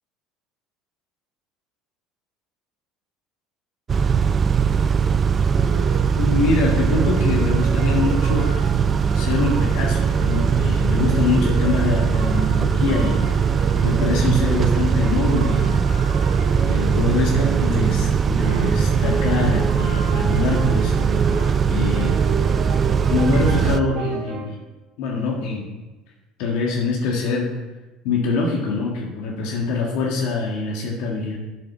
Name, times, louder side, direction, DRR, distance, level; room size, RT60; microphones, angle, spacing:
Car / Idling / Accelerating revving vroom, 3.9-23.8, right 6 dB, 35° right, 0.4 m, -20 dB
sound 1, 5.5-6.1 6.7-18.1 18.4-24.5, right 3 dB, 75° right, 2.6 m, -32 dB
voice 1, 6.2-8.5 9.1-13.2 13.8-15.9 16.7-20.9 21.7-22.2 23.1-24.6 25.0-25.7 26.4-27.5 28.0-31.4, left 4 dB, 75° left, -2 dB, 1.8 m, -24 dB
7.7 x 7.1 x 6.2 m, 1.1 s
supercardioid pair, 90°, 0 cm